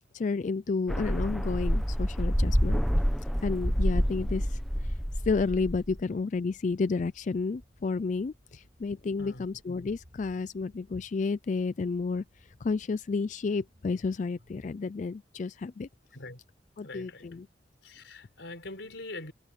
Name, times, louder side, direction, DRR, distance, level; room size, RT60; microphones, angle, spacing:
voice 1, 0.1-2.8 3.4-4.9 5.2-12.2 12.6-15.9 16.8-17.5, left 4 dB, 40° left, 0.4 m, -31 dB
sound 1, 0.9-6.0, equal, ahead, 1.1 m, -28 dB
sound 2, 5.1-14.7, equal, 50° right, 6.1 m, -60 dB
voice 2, 16.8-17.3 17.8-19.3, left 2 dB, 85° left, 4.2 m, -43 dB
head